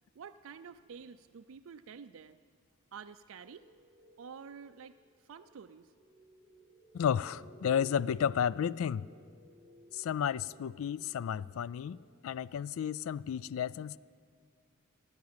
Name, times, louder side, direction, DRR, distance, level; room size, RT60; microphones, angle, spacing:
voice 1, 0.2-2.4 2.9-3.7 4.2-5.9, right 6 dB, 70° right, 9 dB, 0.4 m, -49 dB
sound 1, 3.4-12.2, right 1 dB, 35° left, 3.6 m, -59 dB
voice 2, 6.9-9.1 9.9-14.0, left 8 dB, 75° left, 20 dB, 0.3 m, -32 dB
16.0 x 10.5 x 8.6 m, 2.1 s
head